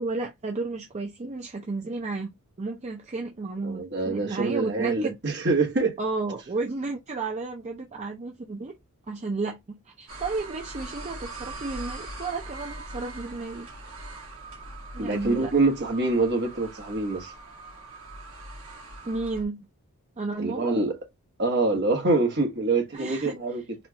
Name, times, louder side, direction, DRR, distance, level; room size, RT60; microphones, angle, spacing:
voice 1, 0.0-5.1 6.0-8.8 9.1-13.7 14.9-15.5 19.0-19.6 20.2-20.7 22.9-23.3, right 3 dB, 30° right, 0.5 m, -32 dB
voice 2, 3.6-6.0 15.0-17.3 20.4-21.0 21.4-23.6, right 3 dB, 50° right, 1.2 m, -25 dB
sound 1, 10.1-19.4, right 2 dB, 65° right, 1.3 m, -41 dB
4.2 x 2.3 x 2.8 m
head